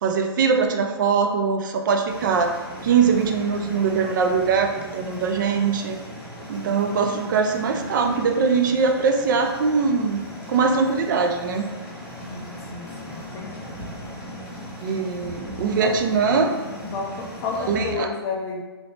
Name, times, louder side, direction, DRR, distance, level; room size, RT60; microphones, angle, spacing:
voice 1, 0.0-2.5 2.8-6.0 6.5-10.2 10.5-11.7 14.8-16.6 17.7-18.1, right 5 dB, 50° right, 4 dB, 0.4 m, -22 dB
sound 1, 2.1-17.9, left 1 dB, 5° right, 0.8 m, -38 dB
voice 2, 12.2-13.6 15.8-16.2 16.8-18.6, left 4 dB, 25° left, 0 dB, 0.3 m, -32 dB
3.1 x 2.7 x 2.8 m, 1.2 s
hypercardioid pair, 140°, 13 cm